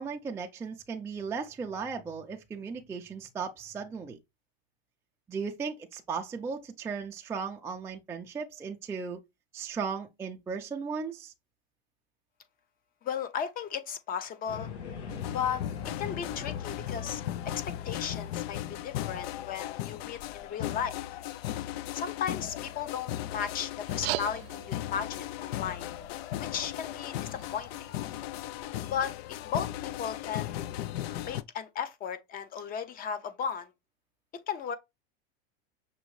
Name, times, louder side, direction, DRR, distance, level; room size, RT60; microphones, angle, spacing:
voice 1, 0.0-4.2 5.3-9.2 9.5-11.3, right 5 dB, 10° right, 0.3 m, -36 dB
voice 2, 13.0-14.7 15.3-15.6 16.0-17.2 17.8-20.9 21.9-25.9 26.4-27.9 28.9-30.6 31.1-33.7 34.5-34.8, left 7 dB, 25° left, 0.6 m, -35 dB
sound 1, 14.5-19.8, left 6 dB, 85° left, 1.4 m, -43 dB
sound 2, 15.1-31.4, left 13 dB, 70° left, 0.5 m, -37 dB
sound 3, 23.8-28.8, right 17 dB, 70° right, 0.5 m, -42 dB
6.1 x 2.7 x 3.0 m
supercardioid pair, 130°, 32 cm